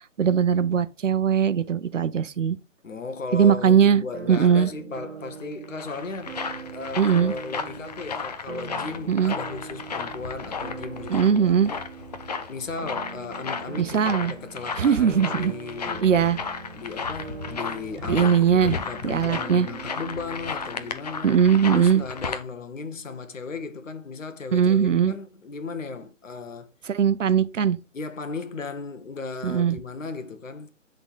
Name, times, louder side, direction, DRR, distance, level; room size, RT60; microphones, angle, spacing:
voice 1, 0.2-2.6 3.3-4.7 7.0-7.3 9.1-9.3 11.1-11.7 13.8-14.3 14.8-15.5 16.0-16.4 18.1-18.8 19.0-19.7 21.2-22.0 24.5-25.1 26.9-27.8 29.4-29.8, right 7 dB, 70° right, 0.7 m, -20 dB
voice 2, 2.8-6.4 6.7-11.8 12.5-16.1 16.7-21.4 21.7-26.7 27.9-30.7, left 4 dB, 75° left, 1.3 m, -36 dB
sound 1, 4.1-22.0, right 6 dB, 50° right, 1.1 m, -42 dB
sound 2, 5.4-22.4, left 5 dB, 30° left, 0.6 m, -34 dB
9.6 x 3.9 x 3.7 m
figure-of-eight pair, 145°, 39 cm